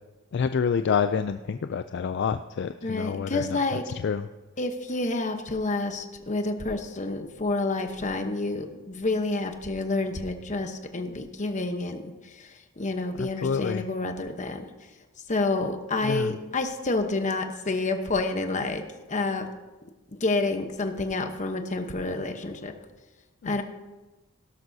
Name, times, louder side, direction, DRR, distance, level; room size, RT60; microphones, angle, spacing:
voice 1, 0.3-3.6 4.0-4.2 13.2-13.8 16.0-16.3 23.4-23.6, left 6 dB, 55° left, 10 dB, 0.3 m, -27 dB
voice 2, 2.8-3.8 4.6-14.6 15.3-18.8 19.1-19.5 20.1-22.7 23.4-23.6, left 2 dB, 35° left, 6 dB, 1.0 m, -29 dB
17.0 x 12.5 x 2.7 m, 1.1 s
head